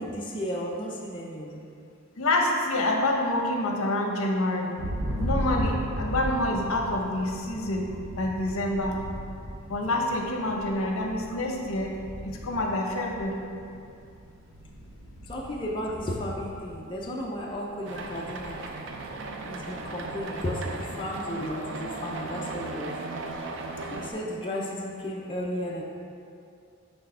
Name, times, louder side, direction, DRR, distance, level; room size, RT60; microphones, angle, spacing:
voice 1, 0.0-1.6 15.3-18.6 19.4-22.9 23.9-25.8, equal, 25° left, -3 dB, 0.5 m, -34 dB
voice 2, 2.2-4.8 5.2-7.9 8.2-9.0 9.7-11.9 12.2-13.4, left 1 dB, 75° left, 1 dB, 0.8 m, -27 dB
Thunder, 4.8-17.7 18.0-18.6 18.9-20.4, equal, 75° right, 0.9 m, -36 dB
sound 1, 17.8-24.1, right 3 dB, 60° right, 0.5 m, -36 dB
6.2 x 3.4 x 5.5 m, 2.5 s
head